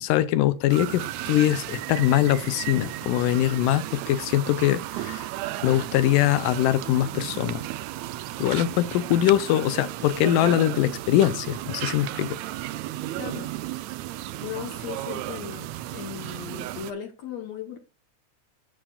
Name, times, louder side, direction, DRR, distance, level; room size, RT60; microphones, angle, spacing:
voice 1, 0.0-5.3 5.6-7.6 8.4-12.4, left 13 dB, 85° left, 2.2 m, -22 dB
sound 1, 0.7-16.9, right 14 dB, 85° right, 1.6 m, -34 dB
voice 2, 13.2-13.5 14.4-15.7 15.9-17.8, left 9 dB, 65° left, 2.1 m, -37 dB
13.0 x 7.8 x 2.3 m
omnidirectional pair, 3.8 m